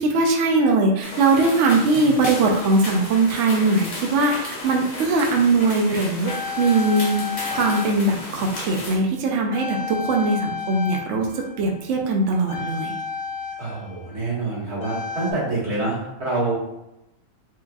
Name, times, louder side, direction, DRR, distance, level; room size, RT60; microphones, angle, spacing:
voice 1, 0.0-12.9, right 3 dB, 65° right, 1 dB, 0.8 m, -21 dB
sound 1, 1.0-9.0, left 2 dB, 40° left, 0.7 m, -34 dB
sound 2, 6.3-9.2 9.5-15.3, left 5 dB, 75° left, 1.1 m, -32 dB
voice 2, 13.6-16.5, right 2 dB, 85° right, -7 dB, 1.9 m, -26 dB
4.6 x 2.5 x 2.3 m, 0.89 s
omnidirectional pair, 1.6 m